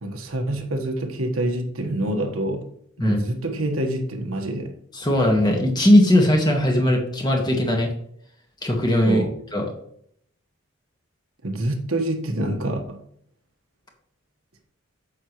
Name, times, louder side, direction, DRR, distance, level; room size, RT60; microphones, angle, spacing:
voice 1, 0.0-2.7 3.0-4.7 9.1-9.3 11.4-13.0, right 1 dB, 90° right, 1.4 m, -26 dB
voice 2, 4.9-7.9 8.6-9.2 9.5-9.7, left 1 dB, 20° left, 1.7 m, -19 dB
8.9 x 7.1 x 3.1 m
head